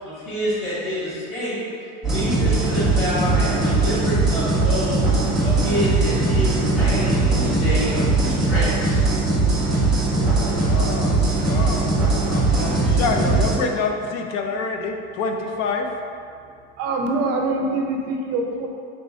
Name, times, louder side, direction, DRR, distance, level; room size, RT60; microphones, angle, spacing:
voice 1, 0.0-1.6 2.0-9.1, equal, 40° left, -12 dB, 1.4 m, -28 dB
sound 1, 2.0-13.6, right 2 dB, ahead, 0.9 m, -20 dB
voice 2, 10.4-11.9 12.3-15.9, left 4 dB, 60° left, 3 dB, 0.5 m, -27 dB
voice 3, 16.8-18.7, right 2 dB, 55° right, 1 dB, 0.6 m, -24 dB
4.5 x 3.1 x 2.6 m, 2.3 s
cardioid pair, 140°, 30 cm